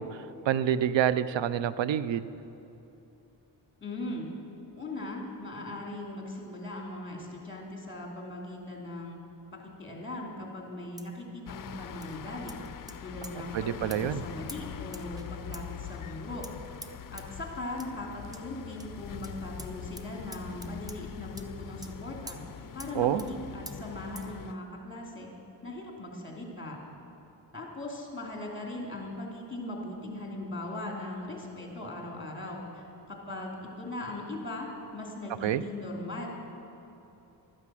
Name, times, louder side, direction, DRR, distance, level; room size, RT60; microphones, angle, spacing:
voice 1, 0.0-2.3 13.5-14.2 22.9-23.3 35.4-35.6, right 10 dB, 80° right, 15 dB, 0.6 m, -28 dB
voice 2, 3.8-4.3 4.7-9.2 9.5-12.6 13.0-16.4 17.1-22.4 22.7-25.3 25.6-26.8 27.5-36.3, left 2 dB, 25° left, 0 dB, 2.8 m, -39 dB
sound 1, 11.0-11.2 12.0-12.2 12.5-13.0 13.2-13.3 13.9-14.0 14.5-14.6 14.9-15.3 15.5-15.6 16.4-16.5 16.8-16.9 17.2-17.3 17.8-17.9 18.3-18.4 18.8-18.9 19.2-19.3 19.6-19.7 20.0-20.1 20.3-21.0 21.4-21.5 21.8-21.9 22.3-22.4 22.8-22.9 23.2-23.3 23.7-23.8 24.2-24.3, right 1 dB, 10° right, 0.8 m, -45 dB
sound 2, 11.5-24.5, left 9 dB, 50° left, 0.5 m, -43 dB
12.5 x 9.8 x 7.5 m, 2.9 s
wide cardioid pair, 95°, 44 cm